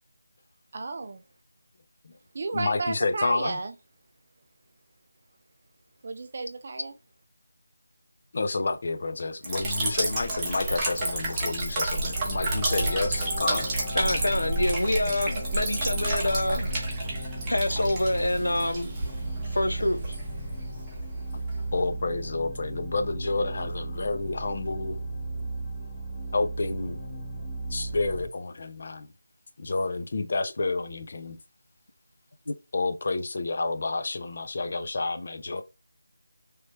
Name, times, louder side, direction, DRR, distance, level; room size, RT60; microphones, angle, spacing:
voice 1, 0.7-1.2 2.3-3.7 6.0-6.9, right 3 dB, 40° right, 0.4 m, -33 dB
voice 2, 2.5-3.6 8.3-13.7 21.7-25.0 26.3-27.0 27.7-29.1 29.6-31.4 32.7-35.6, left 3 dB, 45° left, 0.6 m, -29 dB
Liquid, 9.4-21.9, right 2 dB, 10° right, 0.8 m, -31 dB
sound 1, 11.8-28.2, right 2 dB, 20° left, 0.9 m, -35 dB
voice 3, 13.9-16.7 17.5-18.9 19.5-20.2 32.5-32.6, left 1 dB, 85° left, 0.7 m, -26 dB
3.2 x 2.9 x 3.2 m
figure-of-eight pair, 170°, 0 cm